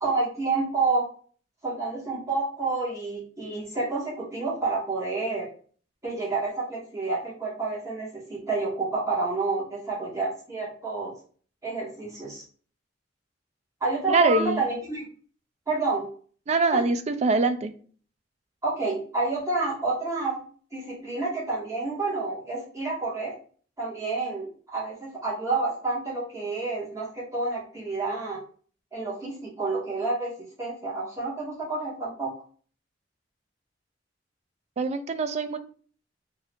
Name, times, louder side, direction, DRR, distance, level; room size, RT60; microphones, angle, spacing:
voice 1, 0.0-1.1 1.6-5.5 6.0-11.1 11.6-12.4 13.8-15.1 15.7-16.1 16.7-16.8 18.6-20.4 20.7-23.3 23.8-28.4 28.9-32.3, right 3 dB, 15° right, -5 dB, 1.2 m, -29 dB
voice 2, 14.1-14.6 16.5-17.7 34.8-35.6, right 3 dB, 35° right, 9 dB, 0.3 m, -24 dB
2.7 x 2.4 x 3.5 m, 0.43 s
head